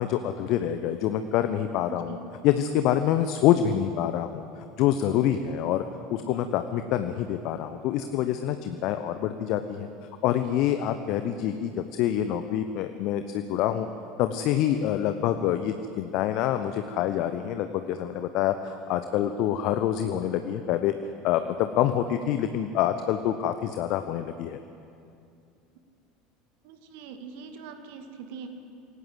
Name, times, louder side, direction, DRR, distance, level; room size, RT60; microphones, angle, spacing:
voice 1, 0.0-2.2 2.4-5.8 6.1-9.9 10.2-13.9 14.2-20.9 21.2-24.6, left 11 dB, 50° left, 9 dB, 1.0 m, -26 dB
voice 2, 1.9-2.2 26.6-28.5, right 6 dB, 55° right, 6 dB, 2.3 m, -42 dB
27.0 x 18.0 x 8.0 m, 2.6 s
figure-of-eight pair, 70°, 0 cm